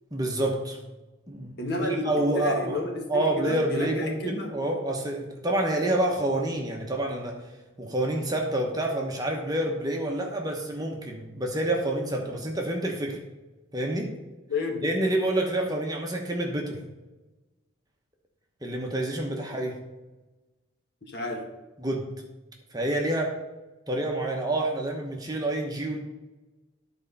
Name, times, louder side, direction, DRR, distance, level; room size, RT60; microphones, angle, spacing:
voice 1, 0.1-0.8 1.3-2.8 3.1-7.4 7.8-13.2 13.7-14.1 14.8-16.8 18.6-19.8 21.8-22.1 22.7-23.3 23.9-26.0, right 1 dB, 20° right, 1 dB, 1.0 m, -28 dB
voice 2, 1.6-4.5 14.5-14.8 21.1-21.5, left 1 dB, 50° left, 2 dB, 1.4 m, -31 dB
11.0 x 4.4 x 5.4 m, 1.1 s
head